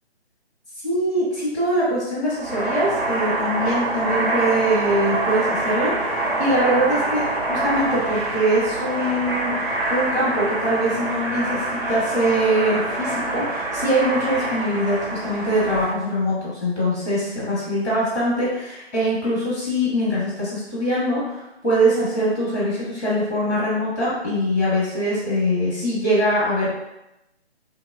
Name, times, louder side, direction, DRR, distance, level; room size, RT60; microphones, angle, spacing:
voice 1, 0.8-11.6 11.9-26.8, equal, ahead, -22 dB, 0.5 m, -23 dB
sound 1, 2.3-15.9, right 2 dB, 50° right, 1.1 m, -25 dB
2.8 x 2.0 x 2.5 m, 0.91 s
figure-of-eight pair, 145°, 33 cm